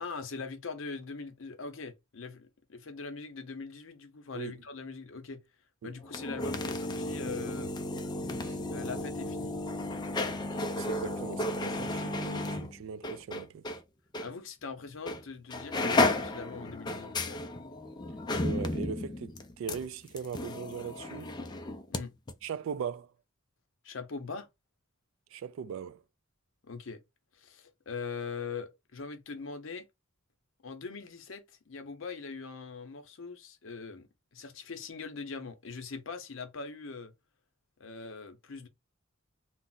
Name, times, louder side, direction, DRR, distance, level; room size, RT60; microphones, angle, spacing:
voice 1, 0.0-5.4 5.8-7.7 8.7-9.5 14.2-17.4 21.9-22.1 23.8-24.5 26.6-27.0 27.3-29.9 30.6-37.1 37.8-38.7, left 4 dB, 70° left, 0.7 m, -41 dB
sound 1, 6.0-13.8 14.1-14.3 15.1-15.2 15.5-22.0 22.3-22.4, left 2 dB, 20° left, 0.3 m, -33 dB
voice 2, 10.8-13.7 18.4-21.4 22.4-23.1 25.3-26.0, right 7 dB, 70° right, 0.3 m, -39 dB
2.4 x 2.0 x 3.8 m
head